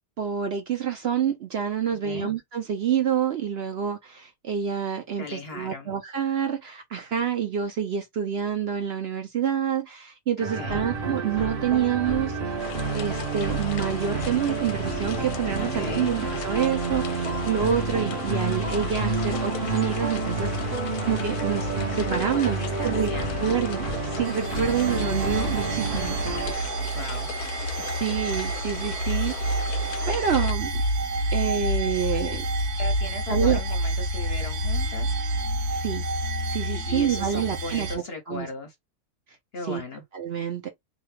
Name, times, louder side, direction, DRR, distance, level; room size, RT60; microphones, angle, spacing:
voice 1, 0.2-12.6 12.9-20.7 21.1-23.1 23.4-26.2 27.8-29.3 30.1-30.8 31.3-32.5 33.3-33.6 35.7-36.0 36.5-38.5 39.7-39.8 40.1-40.7, right 8 dB, 65° right, 0.6 m, -27 dB
voice 2, 1.9-2.3 5.2-5.9 10.5-10.9 15.6-16.1 22.3-23.5 26.9-27.3 32.8-35.1 36.7-38.7 39.5-40.0, left 3 dB, 55° left, 0.8 m, -37 dB
sound 1, 10.4-26.5, right 3 dB, 45° right, 1.0 m, -29 dB
sound 2, 12.6-30.5, left 10 dB, 90° left, 1.1 m, -38 dB
sound 3, 24.3-38.0, right 1 dB, 85° right, 1.4 m, -28 dB
3.0 x 2.3 x 3.2 m
omnidirectional pair, 1.6 m